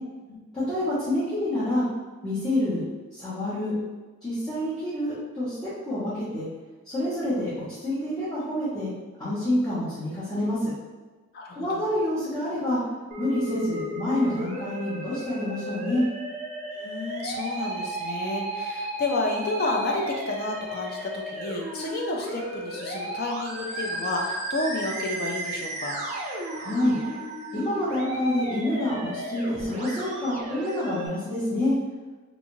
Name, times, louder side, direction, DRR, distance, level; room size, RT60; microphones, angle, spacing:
voice 1, 0.5-1.9 2.2-2.8 3.1-3.7 4.2-6.5 6.8-8.9 9.2-10.7 11.5-12.8 13.2-16.0 26.5-27.0 27.5-31.7, left 1 dB, 15° left, -15 dB, 0.8 m, -27 dB
voice 2, 11.3-11.9 16.7-26.0, left 2 dB, 45° left, 0 dB, 0.4 m, -31 dB
Musical instrument, 13.1-31.1, right 1 dB, 30° right, 0.5 m, -34 dB
2.6 x 2.4 x 3.0 m, 1.3 s
head